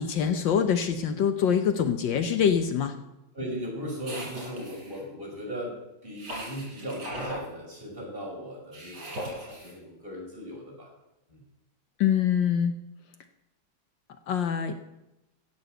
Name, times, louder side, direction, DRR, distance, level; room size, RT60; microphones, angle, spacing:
voice 1, 0.0-2.9 12.0-12.8 14.3-14.8, left 8 dB, 70° left, 8 dB, 1.5 m, -24 dB
voice 2, 3.3-5.8 6.0-10.9 11.3-11.4, equal, 25° right, -4 dB, 5.7 m, -38 dB
sound 1, 4.0-5.0 6.2-7.4 8.7-9.7, equal, 55° right, 7.1 m, -38 dB
16.0 x 7.1 x 7.8 m, 0.94 s
omnidirectional pair, 2.2 m